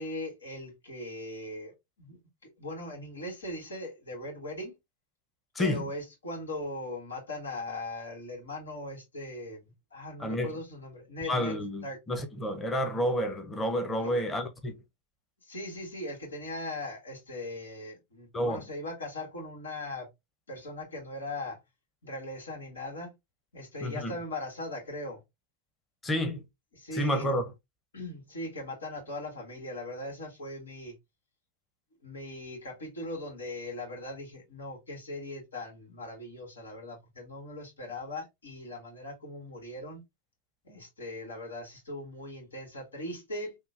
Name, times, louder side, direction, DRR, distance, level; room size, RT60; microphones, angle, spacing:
voice 1, 0.0-2.2 2.6-4.8 5.6-11.6 11.8-12.0 14.0-14.2 15.4-20.1 20.5-21.6 22.0-23.1 23.5-25.2 26.7-27.3 27.9-31.0 32.0-40.0 40.6-43.6, left 1 dB, 90° left, 1.6 m, -39 dB
voice 2, 5.5-5.9 10.2-10.6 11.3-14.8 18.3-18.6 23.8-24.1 26.0-26.4 26.9-27.4, equal, 15° left, 0.8 m, -30 dB
3.6 x 2.3 x 2.6 m
hypercardioid pair, 100°, 0 cm